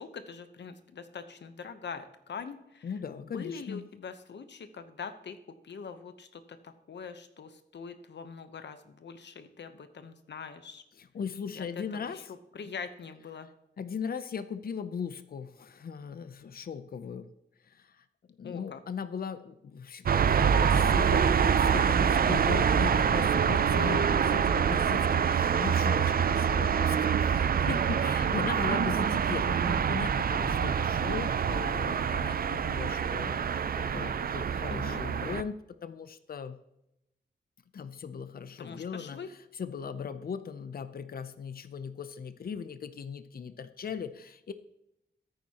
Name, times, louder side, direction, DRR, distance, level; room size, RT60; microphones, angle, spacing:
voice 1, 0.0-2.9 3.3-5.4 5.6-10.8 11.5-11.7 11.9-12.2 12.5-13.5 18.4-18.8 23.8-24.1 26.5-26.8 34.7-35.0 38.6-39.3, left 5 dB, 75° left, 10 dB, 0.9 m, -43 dB
voice 2, 2.8-3.9 11.0-12.2 13.8-17.3 17.6-35.6 35.8-36.6 37.7-44.5, left 6 dB, 55° left, 12 dB, 0.6 m, -39 dB
sound 1, 20.1-35.4, right 7 dB, 55° right, 0.4 m, -26 dB
13.5 x 9.4 x 2.9 m, 0.84 s
wide cardioid pair, 125°, 18 cm